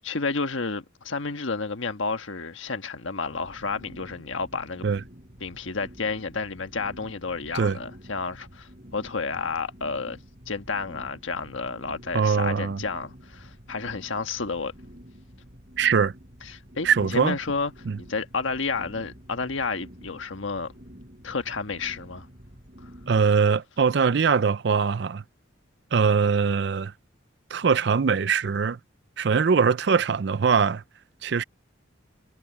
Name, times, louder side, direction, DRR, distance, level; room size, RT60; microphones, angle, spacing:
voice 1, 0.0-4.9 5.4-10.2 10.5-14.7 16.4-17.7 18.0-20.7 21.2-22.3 22.8-22.9, left 4 dB, 80° left, 1.4 m, -31 dB
sound 1, 3.3-23.3, equal, 40° right, 5.3 m, -48 dB
voice 2, 12.1-12.8 15.8-16.1 16.8-17.4 17.9-18.0 23.1-25.2 25.9-26.9 27.5-28.8 29.2-30.8 31.2-31.4, right 5 dB, 55° right, 0.4 m, -22 dB
head